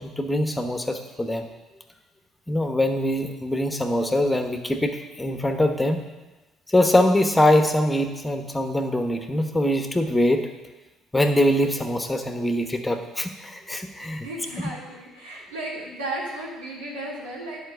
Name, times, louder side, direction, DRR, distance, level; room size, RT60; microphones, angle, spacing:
voice 1, 0.0-1.5 2.5-6.0 6.7-10.4 11.1-14.3, left 1 dB, 10° left, 5 dB, 1.1 m, -23 dB
voice 2, 14.2-17.6, right 1 dB, 85° right, -6 dB, 2.9 m, -34 dB
10.0 x 5.1 x 6.9 m, 1.1 s
hypercardioid pair, 55°, 0 cm